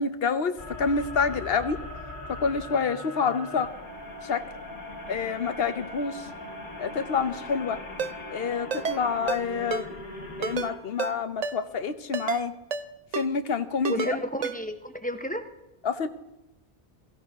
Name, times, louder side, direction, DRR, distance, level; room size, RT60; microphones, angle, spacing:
voice 1, 0.0-1.8 2.3-3.7 4.2-4.4 5.1-6.3 6.8-7.8 8.3-10.0 10.4-12.5 13.1-14.2 15.8-16.1, left 5 dB, 70° left, 11 dB, 1.1 m, -28 dB
sound 1, 0.6-10.8, left 2 dB, 55° left, 2.1 m, -40 dB
Ringtone, 8.0-8.1 8.7-9.0 9.3-9.4 9.7-9.8 10.4-10.7 11.0-11.1 11.4-11.6 12.1-12.4 12.7-12.8 13.1-13.3 13.8-14.1 14.4-14.5, right 6 dB, 45° right, 0.6 m, -29 dB
voice 2, 13.9-15.5, right 1 dB, 10° left, 7 dB, 0.9 m, -32 dB
16.5 x 15.5 x 3.6 m, 0.96 s
omnidirectional pair, 1.0 m